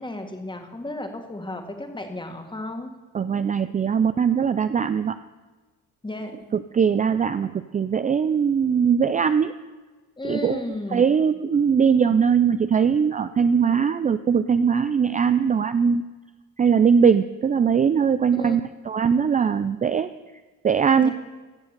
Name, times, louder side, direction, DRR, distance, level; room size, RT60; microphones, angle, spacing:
voice 1, 0.0-2.9 6.0-6.5 10.2-11.1 18.3-18.6 21.0-21.1, left 1 dB, 15° left, 5 dB, 1.9 m, -33 dB
voice 2, 3.1-5.1 6.5-9.5 10.2-10.6 10.9-16.0 16.6-18.6 18.9-20.1 20.6-21.1, right 6 dB, 25° right, 12 dB, 0.4 m, -20 dB
15.0 x 7.1 x 6.7 m, 1.3 s
cardioid pair, 90°, 30 cm